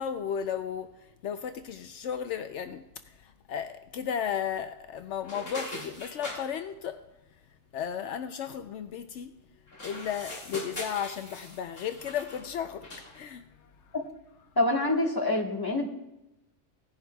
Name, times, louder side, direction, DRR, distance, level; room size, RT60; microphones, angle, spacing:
voice 1, 0.0-7.0 7.7-9.3 9.8-13.7, left 8 dB, 75° left, 0.9 m, -34 dB
sound 1, 5.2-6.4 9.7-12.5 12.8-13.2, left 1 dB, 50° left, 2.7 m, -41 dB
voice 2, 14.6-15.9, left 2 dB, 20° left, 1.4 m, -26 dB
18.0 x 10.5 x 2.3 m
omnidirectional pair, 1.2 m